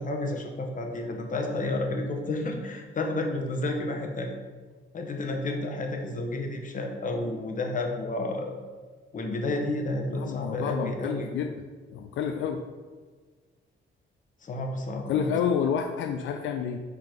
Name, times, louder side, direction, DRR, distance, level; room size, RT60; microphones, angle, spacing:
voice 1, 0.0-4.3 4.9-8.5 9.1-11.3 14.4-15.3, left 2 dB, 40° left, 2 dB, 1.1 m, -31 dB
voice 2, 10.1-11.5 11.9-12.6 15.1-16.8, left 7 dB, 75° left, 5 dB, 0.4 m, -29 dB
5.7 x 3.8 x 5.1 m, 1.4 s
cardioid pair, 90°, 20 cm